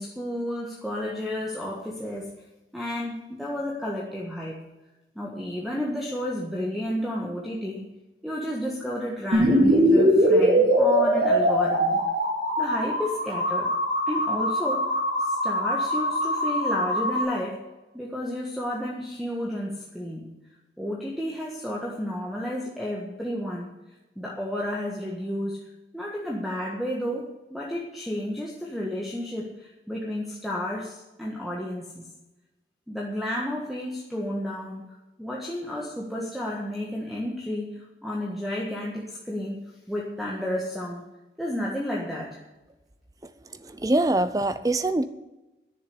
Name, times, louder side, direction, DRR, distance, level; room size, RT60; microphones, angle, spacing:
voice 1, 0.0-2.3 2.7-4.6 5.1-7.8 8.2-12.0 12.6-13.7 14.1-14.9 15.2-17.6 17.9-20.3 20.8-23.7 24.1-25.6 25.9-32.0 32.9-34.9 35.2-39.6 39.9-41.0 41.4-42.4, equal, ahead, -3 dB, 1.6 m, -31 dB
sound 1, 9.3-17.2, equal, 55° right, 4.2 m, -22 dB
voice 2, 43.2-45.0, right 2 dB, 20° right, 12 dB, 0.6 m, -25 dB
11.0 x 7.0 x 9.7 m, 1.0 s
head